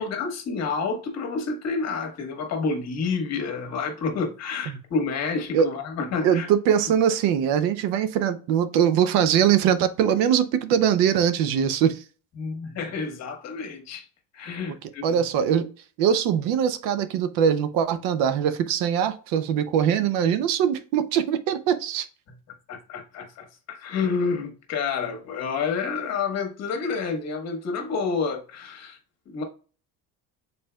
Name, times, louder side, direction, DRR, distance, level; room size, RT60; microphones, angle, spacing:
voice 1, 0.0-6.5 12.4-14.0 14.3-15.0 22.3-22.4 22.7-29.0 29.2-29.4, left 5 dB, 50° left, 1.4 m, -29 dB
voice 2, 6.2-12.0 15.0-15.7 16.0-22.1, right 8 dB, 80° right, 0.7 m, -22 dB
5.4 x 4.2 x 2.2 m
cardioid pair, 115°, 34 cm